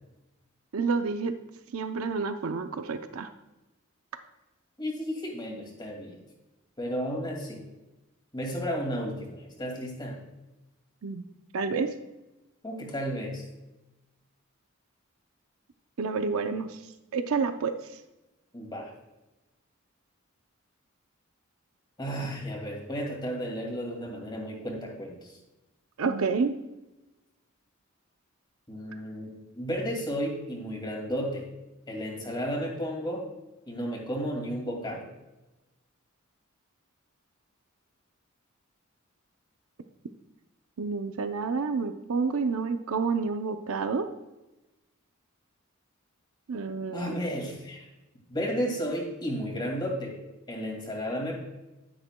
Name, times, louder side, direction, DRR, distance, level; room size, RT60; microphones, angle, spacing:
voice 1, 0.7-1.3 1.7-3.3 11.0-11.2 11.5-11.9 16.0-16.8 17.1-17.7 26.0-26.6 40.8-44.1 46.5-47.2, right 4 dB, 85° right, 8 dB, 0.6 m, -29 dB
voice 2, 4.8-6.2 6.8-7.6 8.3-10.2 12.6-13.4 18.5-18.9 22.0-25.4 28.7-31.5 31.9-33.2 33.7-35.0 46.9-47.9 48.3-50.2 50.5-51.4, equal, 20° left, -1 dB, 2.2 m, -33 dB
11.0 x 10.5 x 2.2 m, 1.0 s
head